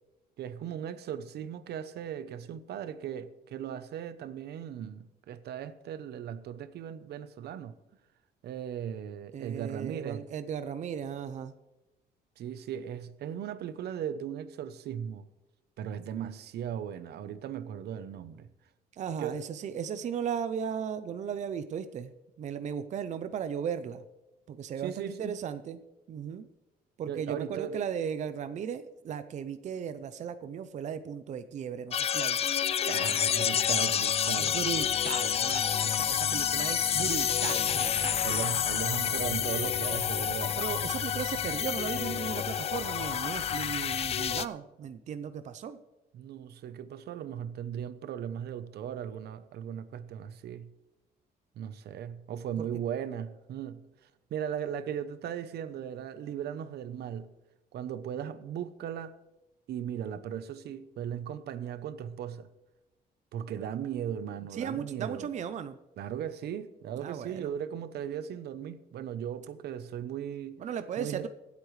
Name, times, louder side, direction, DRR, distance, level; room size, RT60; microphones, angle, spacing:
voice 1, 0.4-7.8 8.4-10.2 12.4-15.3 15.8-18.5 19.2-19.4 24.8-25.4 27.1-27.8 32.9-34.6 38.2-40.6 46.1-50.7 51.6-53.8 54.3-57.3 57.7-59.2 59.7-62.5 63.3-65.3 66.0-70.6 71.0-71.3, right 9 dB, 80° right, 0.8 m, -37 dB
voice 2, 9.3-11.5 18.9-22.1 22.4-24.0 24.5-25.8 26.1-26.5 27.0-32.4 34.4-38.2 40.6-45.8 52.6-52.7 64.5-65.8 67.0-67.5 70.6-71.3, right 8 dB, 45° right, 0.6 m, -36 dB
sound 1, 31.9-44.4, left 9 dB, 40° left, 0.4 m, -29 dB
25.0 x 8.3 x 3.2 m
cardioid pair, 175°, 17 cm